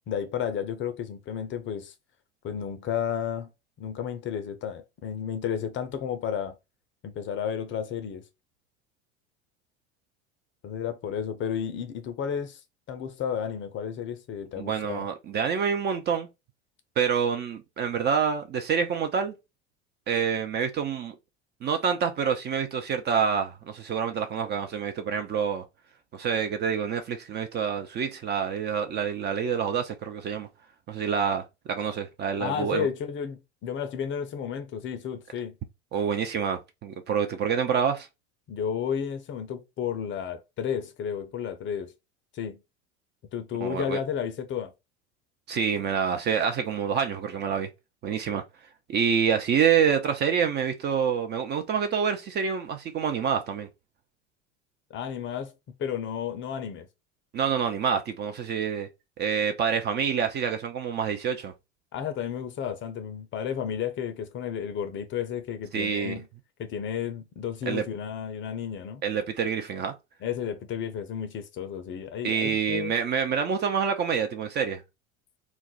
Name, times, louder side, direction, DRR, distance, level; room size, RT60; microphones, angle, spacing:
voice 1, 0.1-1.9 2.4-3.5 3.8-6.6 7.0-8.2 10.6-12.6 12.9-15.1 32.4-35.5 38.5-41.9 42.3-42.6 43.3-44.7 54.9-55.5 55.8-56.9 61.9-66.3 66.6-69.0 70.2-72.9, left 8 dB, 35° left, 0.5 m, -32 dB
voice 2, 14.6-16.3 17.0-19.3 20.1-21.1 21.6-25.6 26.1-30.5 30.9-32.9 35.9-38.1 43.6-44.0 45.5-47.7 48.0-48.4 48.9-53.7 57.3-58.9 59.2-61.5 65.7-66.1 67.7-67.8 69.0-69.9 72.2-74.8, right 7 dB, 30° right, 0.4 m, -27 dB
2.3 x 2.1 x 3.8 m
hypercardioid pair, 80°, 36 cm